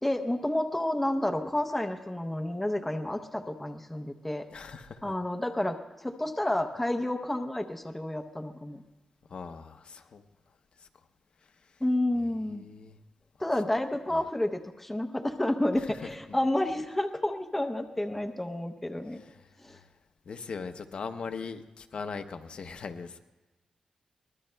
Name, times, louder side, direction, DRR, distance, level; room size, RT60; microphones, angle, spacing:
voice 1, 0.0-4.5 5.0-8.8 11.8-12.7 13.4-19.2 19.6-19.8, left 1 dB, 10° left, 5 dB, 0.7 m, -30 dB
voice 2, 4.5-5.2 9.3-10.2 10.8-10.9 12.4-13.0 14.1-14.3 15.8-16.0 16.3-16.4 19.1-19.9 20.3-23.2, left 5 dB, 55° left, 7 dB, 0.7 m, -40 dB
23.5 x 20.5 x 2.2 m, 1.1 s
wide cardioid pair, 155°, 2 cm